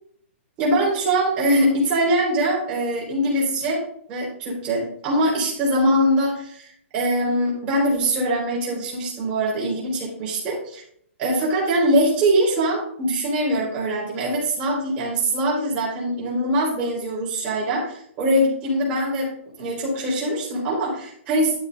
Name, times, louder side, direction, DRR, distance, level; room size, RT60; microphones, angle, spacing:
voice 1, 0.6-3.8 4.1-10.8 11.2-19.3 19.6-21.5, right 1 dB, 15° right, -5 dB, 4.3 m, -22 dB
12.0 x 9.5 x 2.6 m, 0.66 s
hypercardioid pair, 170°, 7 cm